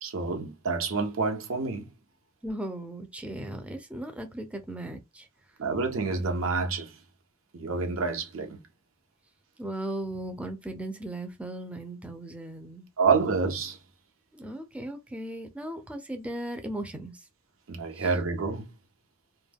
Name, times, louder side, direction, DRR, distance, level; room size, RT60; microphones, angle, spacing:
voice 1, 0.0-1.9 5.6-6.9 7.5-8.6 13.0-13.8 17.7-18.7, right 4 dB, 85° right, 0.6 m, -28 dB
voice 2, 2.4-5.3 9.6-12.9 14.3-17.2 17.9-18.1, right 1 dB, 5° right, 0.4 m, -37 dB
2.2 x 2.2 x 3.3 m
head